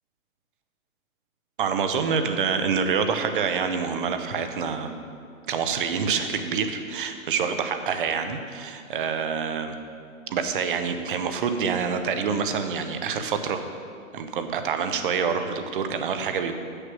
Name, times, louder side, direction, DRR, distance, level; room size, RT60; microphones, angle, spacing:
voice 1, 1.6-4.9 5.5-9.8 10.3-13.6 14.1-16.5, right 6 dB, 40° right, 8 dB, 0.7 m, -26 dB
7.6 x 6.6 x 6.2 m, 2.3 s
hypercardioid pair, 150°, 42 cm